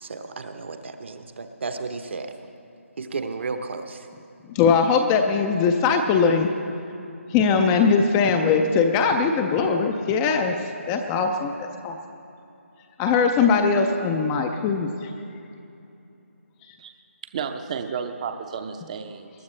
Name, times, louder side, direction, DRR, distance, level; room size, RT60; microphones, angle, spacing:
voice 1, 0.0-2.4 3.0-4.1, right 4 dB, 55° right, 7 dB, 1.0 m, -33 dB
voice 2, 4.5-6.5 7.3-10.6 10.9-12.0 13.0-15.1, left 5 dB, 10° left, 4 dB, 0.4 m, -21 dB
voice 3, 17.3-19.3, right 6 dB, 30° right, 7 dB, 0.6 m, -32 dB
21.5 x 13.0 x 3.2 m, 2.7 s
figure-of-eight pair, 160°, 8 cm